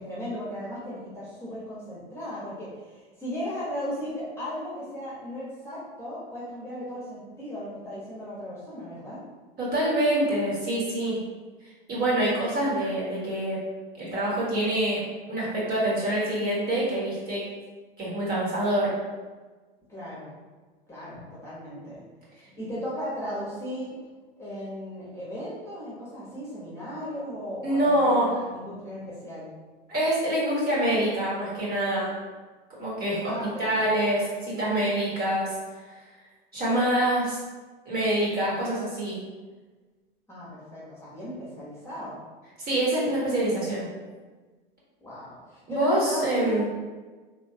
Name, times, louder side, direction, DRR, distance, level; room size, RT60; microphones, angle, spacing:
voice 1, 0.0-9.2 19.9-20.3 20.9-22.0 22.3-23.9 24.4-29.5 33.3-34.1 40.3-42.2 45.0-46.6, equal, 10° left, -8 dB, 1.2 m, -36 dB
voice 2, 9.6-11.2 11.9-13.6 14.0-15.0 15.3-17.4 18.0-18.9 27.6-28.3 29.9-32.1 32.8-33.3 33.6-35.5 36.5-37.4 37.8-39.2 42.6-43.9 45.7-46.6, right 1 dB, 30° right, -7 dB, 1.4 m, -25 dB
3.0 x 3.0 x 2.8 m, 1.3 s
hypercardioid pair, 90°, 29 cm